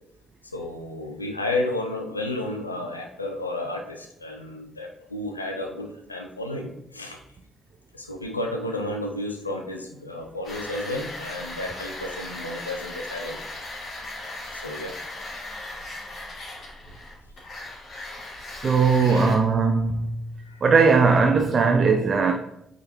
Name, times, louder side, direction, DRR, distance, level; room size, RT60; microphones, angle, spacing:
voice 1, 0.5-7.2 7.9-13.4 14.5-14.9 19.0-19.4 20.4-20.6, left 1 dB, 90° left, 0.6 m, -32 dB
sound 1, 10.4-19.4, left 2 dB, 45° left, 2.4 m, -38 dB
voice 2, 18.4-20.2 20.6-22.3, right 4 dB, 45° right, 0.5 m, -19 dB
8.4 x 3.8 x 2.9 m
figure-of-eight pair, 40°, 0 cm